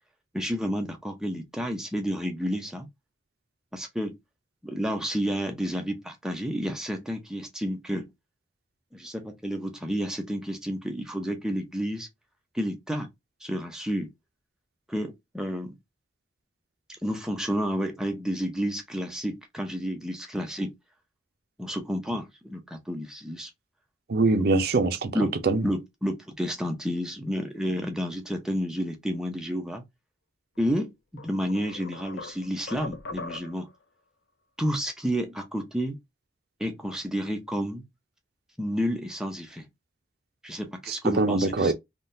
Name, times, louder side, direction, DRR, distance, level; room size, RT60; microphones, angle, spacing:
voice 1, 0.3-2.9 3.7-4.2 4.6-8.1 8.9-12.1 12.5-13.1 13.4-14.1 14.9-15.8 17.0-20.7 21.6-23.5 25.1-25.4 25.6-29.8 30.6-30.9 31.2-33.7 34.6-36.0 36.6-37.8 38.6-39.7 40.4-41.7, equal, 5° right, 0.6 m, -30 dB
voice 2, 24.1-25.7 40.9-41.7, right 3 dB, 55° right, 0.5 m, -24 dB
sound 1, 30.6-30.7 31.2-33.8, left 3 dB, 70° left, 0.5 m, -41 dB
3.7 x 2.3 x 2.6 m
head